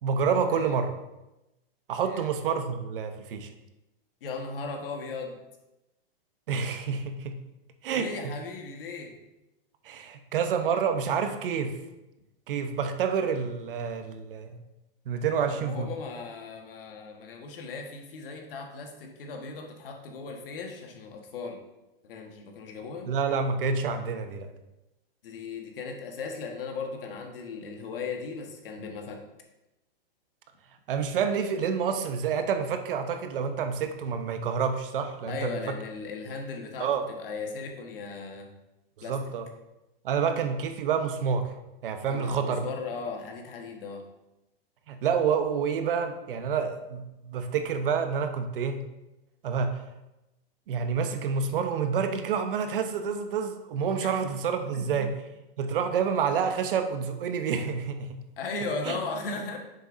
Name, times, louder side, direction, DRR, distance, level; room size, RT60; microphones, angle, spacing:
voice 1, 0.0-0.9 1.9-3.5 6.5-7.3 7.8-8.3 9.8-11.7 12.5-14.6 15.1-15.9 23.1-24.5 30.9-35.6 36.8-37.0 39.1-39.5 40.0-41.5 41.8-42.7 44.9-48.8 49.4-49.7 50.7-55.1 55.6-58.2 58.9-59.0, right 6 dB, 60° right, 7 dB, 0.9 m, -28 dB
voice 2, 4.2-5.4 7.9-9.2 15.5-21.6 22.0-23.1 25.2-29.2 35.3-38.5 39.0-39.2 42.1-44.0 54.0-54.1 54.7-55.1 58.4-59.6, left 4 dB, 65° left, 3 dB, 1.4 m, -37 dB
8.3 x 6.6 x 2.6 m, 0.95 s
hypercardioid pair, 155°, 30 cm